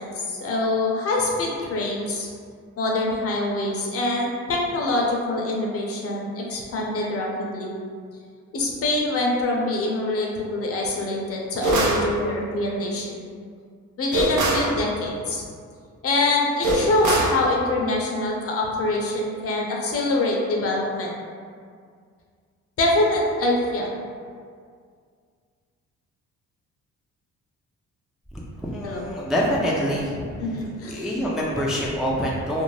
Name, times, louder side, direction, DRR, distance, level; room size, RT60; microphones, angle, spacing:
voice 1, 0.0-2.3 2.8-7.7 8.5-13.1 14.0-15.4 16.0-21.1 22.8-23.9 28.8-29.1 30.4-31.0, left 2 dB, 50° left, -2 dB, 0.6 m, -25 dB
sound 1, 11.6-12.1 14.1-14.7 16.6-17.4, right 2 dB, 80° right, 0.6 m, -22 dB
voice 2, 28.6-30.1 30.8-32.6, equal, ahead, -5 dB, 0.3 m, -25 dB
2.6 x 2.0 x 3.2 m, 2.1 s
cardioid pair, 90°, 30 cm